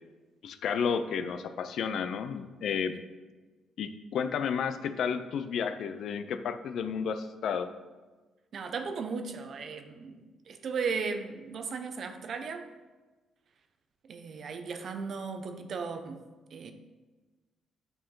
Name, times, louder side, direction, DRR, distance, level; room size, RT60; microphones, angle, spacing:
voice 1, 0.4-3.0 3.8-7.7, left 6 dB, 70° left, 10 dB, 0.5 m, -32 dB
voice 2, 8.5-12.7 14.1-16.2 16.5-16.7, right 5 dB, 55° right, 7 dB, 0.7 m, -36 dB
8.9 x 4.4 x 3.8 m, 1.3 s
cardioid pair, 90°, 0 cm